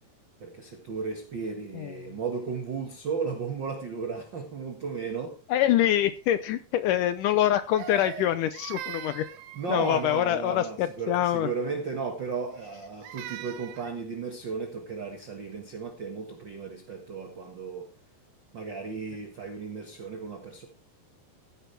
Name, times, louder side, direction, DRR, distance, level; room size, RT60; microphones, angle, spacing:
voice 1, 0.4-5.4 9.5-17.9 18.5-20.7, right 5 dB, 55° right, 1.3 m, -34 dB
voice 2, 1.7-2.2 5.5-9.3 9.7-11.5, left 12 dB, 80° left, 1.8 m, -25 dB
Crying sobbing, 7.8-10.3 12.5-14.0, right 12 dB, 75° right, 2.4 m, -41 dB
15.0 x 10.5 x 3.3 m
omnidirectional pair, 4.5 m